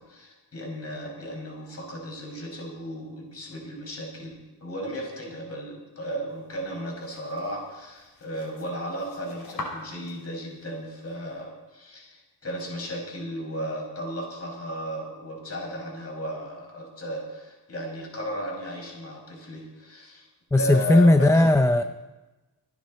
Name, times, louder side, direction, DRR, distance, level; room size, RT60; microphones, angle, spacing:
voice 1, 0.0-20.3 20.5-21.5, equal, 40° left, 0 dB, 6.0 m, -35 dB
sound 1, 6.3-11.4, left 2 dB, 60° left, 4.9 m, -44 dB
voice 2, 20.5-21.8, left 1 dB, 10° left, 9 dB, 0.4 m, -17 dB
25.0 x 9.7 x 4.2 m, 1.1 s
cardioid pair, 95°, 39 cm